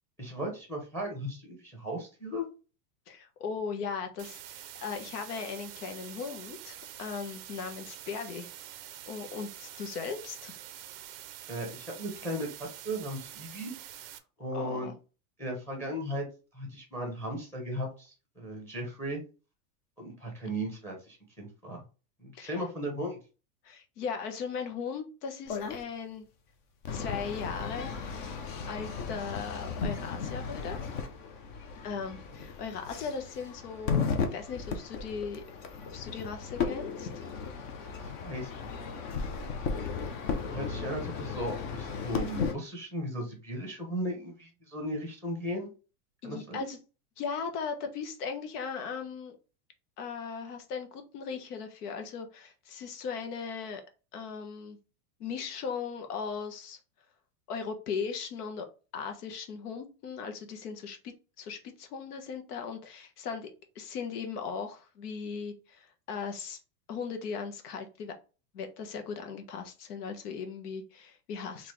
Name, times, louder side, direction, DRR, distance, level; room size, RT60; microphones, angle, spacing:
voice 1, 0.2-2.4 11.5-12.5 12.8-13.7 14.0-14.9 15.4-16.3 16.5-19.2 20.0-21.8 22.2-23.2 38.0-38.5 39.0-39.5 40.5-45.7 46.2-46.7, equal, 5° left, 1 dB, 0.9 m, -36 dB
voice 2, 3.1-10.6 14.5-14.9 22.3-22.6 23.6-26.3 26.9-28.1 28.7-30.8 31.8-34.0 34.3-35.4 35.9-37.2 46.2-46.8 47.2-49.4 50.0-53.8 54.1-54.8 55.2-56.8 57.5-58.7 58.9-63.5 63.7-66.6 66.9-68.1 68.5-71.7, left 6 dB, 85° left, 6 dB, 1.2 m, -38 dB
sound 1, 4.2-14.2, right 12 dB, 40° right, 0.4 m, -46 dB
sound 2, 25.5-25.8 26.8-42.5, left 5 dB, 35° left, 0.5 m, -35 dB
3.9 x 2.8 x 3.1 m, 0.33 s
supercardioid pair, 170°, 45 cm